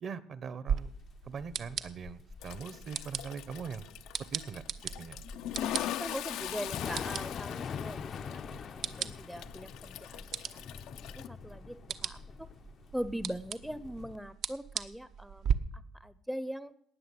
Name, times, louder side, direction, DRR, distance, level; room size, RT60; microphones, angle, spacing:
voice 1, 0.0-0.9 1.2-3.9 4.3-4.6 5.0-5.2, right 6 dB, 50° right, 17 dB, 1.2 m, -41 dB
Thunder / Rain, 0.7-14.2, left 7 dB, 50° left, 0.6 m, -44 dB
sound 1, 0.7-15.5, right 8 dB, 65° right, 1.0 m, -39 dB
Toilet flush, 2.4-11.3, left 12 dB, 85° left, 0.8 m, -41 dB
voice 2, 5.5-10.6 11.0-12.5 12.9-16.7, equal, 5° right, 15 dB, 0.7 m, -41 dB
18.5 x 6.7 x 9.6 m, 0.69 s
cardioid pair, 95°, 0 cm